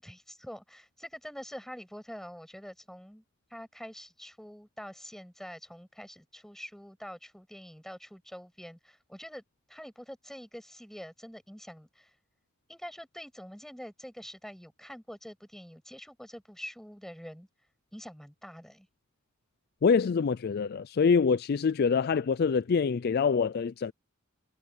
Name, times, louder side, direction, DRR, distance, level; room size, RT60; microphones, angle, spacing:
voice 1, 0.0-3.2 3.5-9.4 9.7-12.1 12.7-17.5 17.9-18.9, equal, ahead, 6.7 m, -45 dB
voice 2, 19.8-23.9, left 5 dB, 50° left, 0.4 m, -25 dB
head